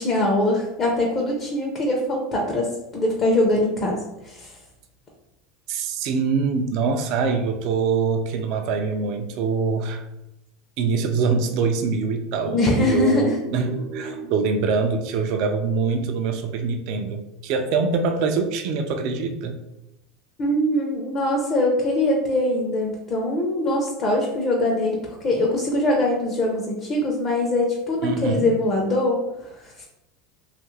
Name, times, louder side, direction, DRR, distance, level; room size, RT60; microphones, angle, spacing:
voice 1, 0.0-4.0 4.2-4.5 12.5-13.4 20.4-25.0 25.2-29.2 29.6-29.8, left 1 dB, 35° left, -1 dB, 0.5 m, -22 dB
voice 2, 5.7-10.0 10.8-19.6 28.0-28.5, right 5 dB, 55° right, 5 dB, 0.3 m, -24 dB
2.7 x 2.4 x 3.0 m, 0.90 s
supercardioid pair, 140°, 0 cm